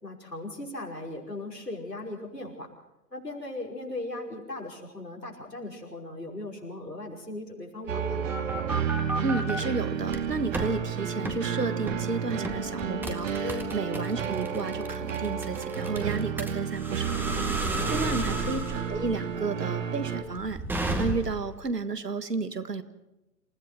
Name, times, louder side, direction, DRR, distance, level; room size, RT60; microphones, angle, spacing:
voice 1, 0.0-2.7 3.1-8.2 13.4-13.7 17.6-18.3, left 2 dB, 90° left, 0 dB, 5.4 m, -38 dB
sound 1, 7.8-9.6 10.1-10.7 11.2-11.4 11.9-12.1 12.4-21.5, right 2 dB, 5° right, 1.7 m, -33 dB
sound 2, 7.9-20.2, right 7 dB, 50° right, 2.4 m, -32 dB
voice 2, 9.2-18.6 18.9-20.6 21.0-22.8, right 3 dB, 80° right, 11 dB, 1.8 m, -32 dB
27.5 x 16.5 x 6.1 m, 0.96 s
figure-of-eight pair, 120°, 48 cm